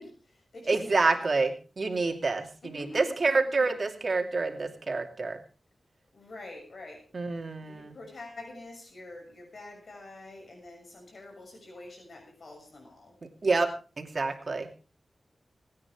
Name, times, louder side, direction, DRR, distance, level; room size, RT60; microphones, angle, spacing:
voice 1, 0.0-1.2 2.6-3.7 6.1-7.1 7.4-13.2, left 2 dB, 70° left, 1 dB, 6.6 m, -46 dB
voice 2, 0.7-5.4 7.1-8.0 13.4-13.7 14.0-14.7, right 3 dB, 55° right, 4 dB, 2.6 m, -28 dB
27.0 x 9.6 x 3.6 m, 0.36 s
cardioid pair, 65°, 0 cm